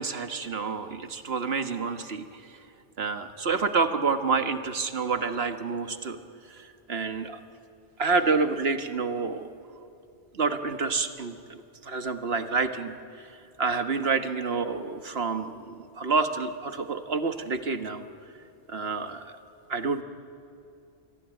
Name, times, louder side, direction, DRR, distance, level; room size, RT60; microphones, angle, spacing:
voice 1, 0.0-2.2 3.0-6.2 6.6-7.4 8.0-9.5 10.3-12.9 13.6-18.0 18.7-19.3 19.7-20.0, right 4 dB, 60° right, 8 dB, 1.6 m, -28 dB
27.5 x 21.0 x 9.1 m, 2.6 s
omnidirectional pair, 1.2 m